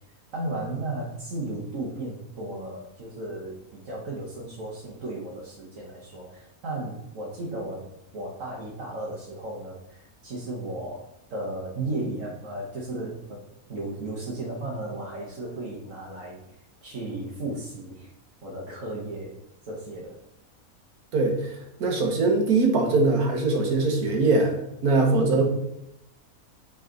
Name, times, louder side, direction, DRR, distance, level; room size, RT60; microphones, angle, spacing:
voice 1, 0.3-7.9 8.1-13.4 13.7-16.4 16.8-18.1 18.4-19.4 19.6-20.2 25.1-25.4, right 2 dB, 60° right, -4 dB, 1.5 m, -34 dB
voice 2, 21.1-21.5 21.8-24.6 24.8-25.4, right 3 dB, 85° right, 1 dB, 1.8 m, -22 dB
8.1 x 4.0 x 3.8 m, 0.83 s
omnidirectional pair, 1.5 m